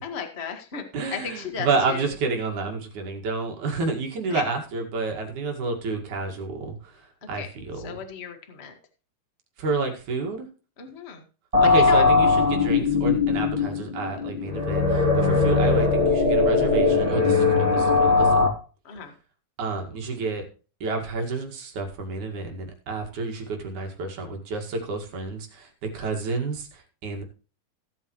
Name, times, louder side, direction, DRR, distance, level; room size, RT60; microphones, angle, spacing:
voice 1, 0.0-0.8 1.1-2.1 4.3-4.4 7.3-7.5 7.8-8.7 10.8-11.2 11.6-12.1 18.8-19.1, left 6 dB, 30° left, 5 dB, 1.1 m, -35 dB
voice 2, 0.9-8.0 9.6-10.5 11.6-18.5 19.6-20.5 20.8-27.2, right 3 dB, 65° right, 3 dB, 3.3 m, -29 dB
sound 1, 11.5-18.5, left 4 dB, 10° right, 2.6 m, -20 dB
16.0 x 8.5 x 3.1 m, 0.36 s
omnidirectional pair, 3.9 m